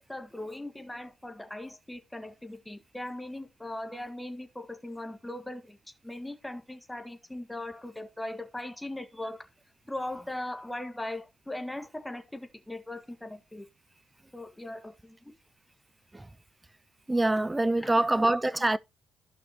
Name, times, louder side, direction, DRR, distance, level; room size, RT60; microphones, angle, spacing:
voice 1, 0.1-5.8 6.0-9.4 9.9-13.6 14.3-15.3 17.8-18.2 18.5-18.6, left 1 dB, 10° left, 1.6 m, -39 dB
voice 2, 17.1-18.8, right 2 dB, 15° right, 0.4 m, -25 dB
14.5 x 5.9 x 3.0 m
cardioid pair, 90°, 0 cm